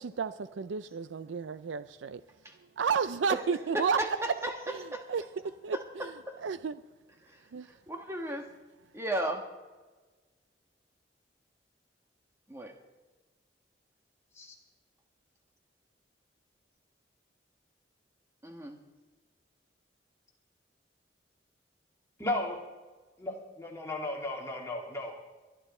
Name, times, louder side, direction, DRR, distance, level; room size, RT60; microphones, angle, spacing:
voice 1, 0.0-2.2 2.8-4.0 4.7-5.2 5.6-6.1 6.4-6.8 7.5-7.7, right 6 dB, 90° right, 13 dB, 0.4 m, -32 dB
voice 2, 3.7-4.5 4.9-5.0 6.3-6.4 7.2-7.4 7.7-8.5 8.9-9.5 12.5-12.7 18.4-18.8, right 1 dB, 15° right, 3 dB, 1.6 m, -34 dB
voice 3, 22.2-22.6 23.2-25.2, left 2 dB, 15° left, -2 dB, 2.6 m, -35 dB
22.5 x 11.0 x 4.3 m, 1.3 s
head